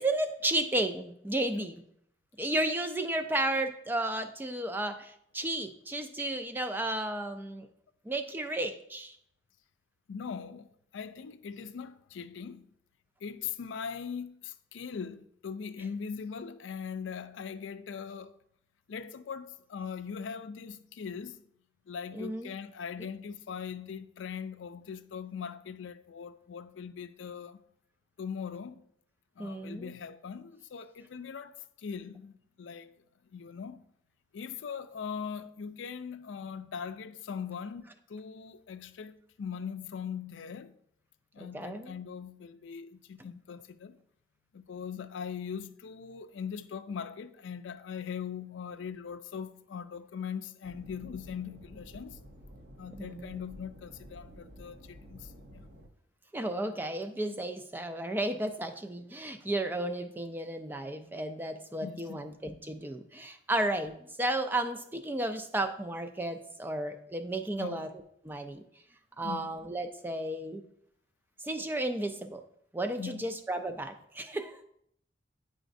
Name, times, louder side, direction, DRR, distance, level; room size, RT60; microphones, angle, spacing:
voice 1, 0.0-1.8 2.4-7.7 8.1-9.2 22.1-22.5 29.4-29.9 41.4-41.9 52.9-53.5 56.3-67.9 68.2-68.6 69.2-70.6 71.4-72.4 72.7-74.6, right 1 dB, 10° right, 0.3 m, -33 dB
voice 2, 10.1-10.7 10.9-12.7 13.2-18.4 18.9-21.4 21.9-27.6 28.2-28.8 29.4-32.9 33.3-33.8 34.3-37.8 38.1-40.7 41.3-44.0 44.5-52.2 52.8-55.6 61.8-62.3 67.6-67.9 69.2-69.6 73.0-73.3, left 6 dB, 90° left, 0.4 m, -40 dB
sound 1, 50.6-55.9, equal, 60° right, 0.7 m, -51 dB
9.0 x 4.9 x 2.6 m
head